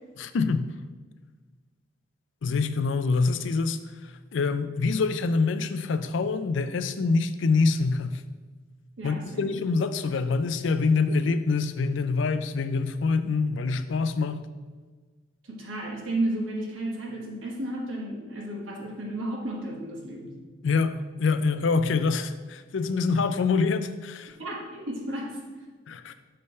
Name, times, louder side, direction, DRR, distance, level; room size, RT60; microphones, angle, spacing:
voice 1, 0.2-0.7 2.4-8.2 9.0-14.4 20.6-24.4 25.9-26.1, left 4 dB, 70° left, 11 dB, 0.4 m, -25 dB
voice 2, 9.0-9.5 15.4-20.3 24.4-25.4, right 1 dB, 80° right, -2 dB, 1.3 m, -33 dB
6.7 x 3.3 x 5.4 m, 1.4 s
head